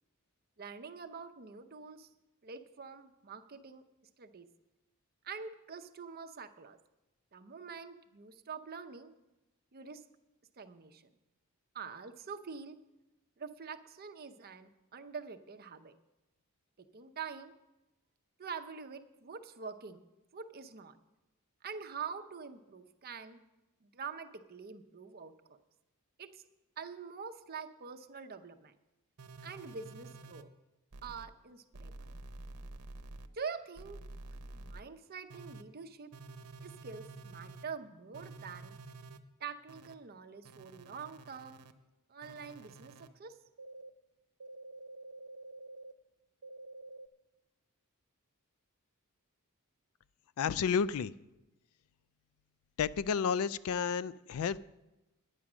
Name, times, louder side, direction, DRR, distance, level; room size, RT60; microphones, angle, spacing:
voice 1, 0.6-2.1 2.4-3.8 4.2-4.5 5.2-6.8 7.3-9.1 9.7-10.0 10.6-11.0 11.7-12.8 13.4-15.9 16.8-17.5 18.4-20.1 20.3-21.0 21.6-23.4 23.8-25.6 26.2-26.4 26.8-28.7 29.4-30.5 31.0-32.1 33.3-34.0 34.5-36.1 36.6-38.8 39.4-41.6 42.1-43.4, right 5 dB, 45° right, 7 dB, 0.7 m, -45 dB
sound 1, 29.2-30.4 30.9-31.2 31.7-33.3 33.7-34.8 35.3-35.6 36.1-37.6 38.1-39.2 39.7-39.9 40.4-41.7 42.2-43.1 43.6-43.9 44.4-45.9 46.4-47.1, right 2 dB, 90° right, 0.7 m, -49 dB
voice 2, 50.4-51.1 52.8-54.6, left 6 dB, 70° left, 18 dB, 0.3 m, -31 dB
10.0 x 9.6 x 6.1 m, 1.0 s
head